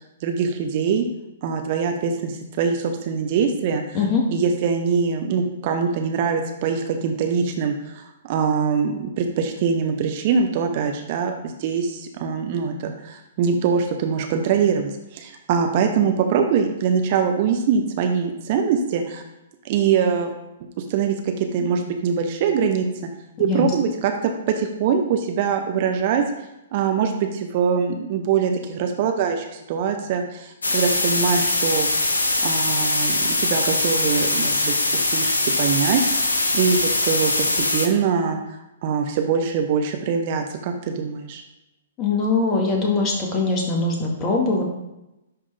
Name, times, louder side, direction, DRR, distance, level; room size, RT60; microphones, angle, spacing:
voice 1, 0.2-1.1 1.4-3.8 4.3-19.2 19.6-20.3 20.8-22.9 23.4-26.2 26.7-31.9 32.4-41.4, right 6 dB, 45° right, 4 dB, 0.9 m, -23 dB
sound 1, 30.6-37.9, left 2 dB, 80° left, 0.9 m, -22 dB
voice 2, 42.0-44.6, left 3 dB, 25° left, -1 dB, 1.7 m, -22 dB
10.5 x 3.7 x 3.4 m, 0.94 s
figure-of-eight pair, 115°, 0 cm